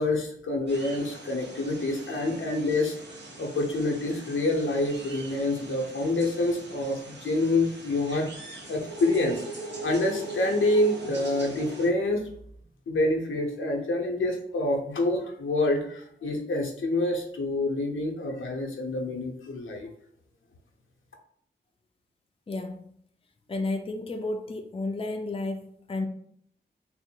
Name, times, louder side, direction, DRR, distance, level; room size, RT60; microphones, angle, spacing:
voice 1, 0.0-2.9 3.4-8.3 8.7-9.4 9.8-12.2 12.9-19.9, left 2 dB, 85° left, 0.8 m, -27 dB
sound 1, 0.7-11.9, right 1 dB, 65° right, 1.0 m, -41 dB
voice 2, 22.5-22.8 23.5-26.1, left 2 dB, 30° left, 0.5 m, -32 dB
3.7 x 2.0 x 4.4 m
cardioid pair, 50°, 20 cm